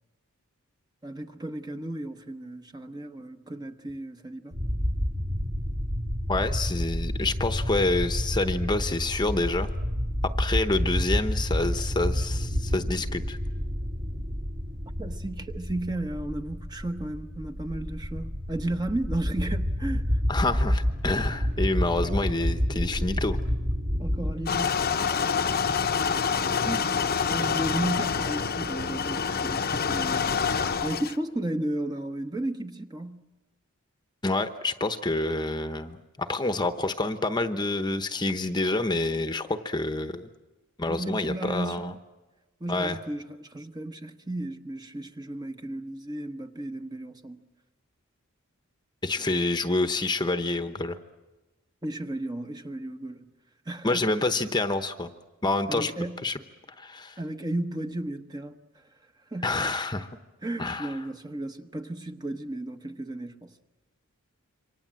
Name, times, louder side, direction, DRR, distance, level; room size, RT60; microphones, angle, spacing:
voice 1, 1.0-4.6 15.0-20.2 24.0-24.7 26.6-26.9 27.3-33.2 40.9-42.0 42.6-47.4 51.8-53.3 53.7-54.1 55.7-56.3 57.2-58.8 59.3-59.6 60.4-63.5, right 1 dB, 20° right, 1.1 m, -34 dB
sound 1, 4.5-24.4, equal, 55° right, 3.6 m, -29 dB
voice 2, 6.3-9.7 10.4-13.4 20.3-23.4 34.2-40.3 40.8-41.9 42.7-43.0 49.0-51.0 53.8-55.1 55.4-55.9 56.2-56.3 56.8-57.2 59.4-60.1 60.6-60.9, left 2 dB, 20° left, 0.9 m, -27 dB
sound 2, 24.5-31.2, left 6 dB, 45° left, 0.8 m, -27 dB
27.5 x 25.0 x 7.6 m
head